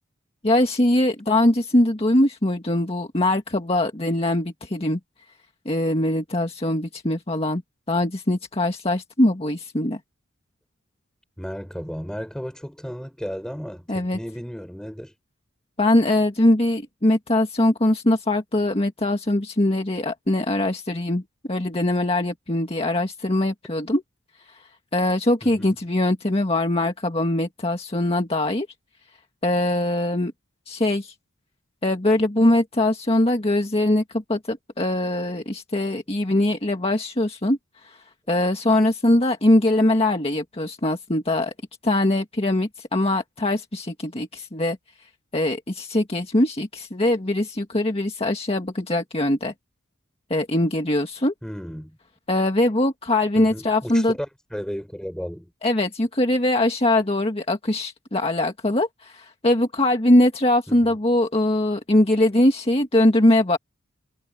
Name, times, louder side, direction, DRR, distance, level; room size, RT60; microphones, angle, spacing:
voice 1, 0.4-5.0 5.7-7.6 7.9-10.0 13.9-14.2 15.8-21.2 21.5-24.0 24.9-28.7 29.4-30.3 30.7-31.1 31.8-37.6 37.8-38.0 38.3-41.5 41.8-44.8 45.3-49.5 50.3-51.3 52.3-54.1 55.6-63.6, left 1 dB, 30° left, 1.8 m, -22 dB
voice 2, 11.4-15.1 25.4-25.8 51.4-52.0 53.3-55.5 60.7-61.0, equal, 5° left, 6.3 m, -34 dB
head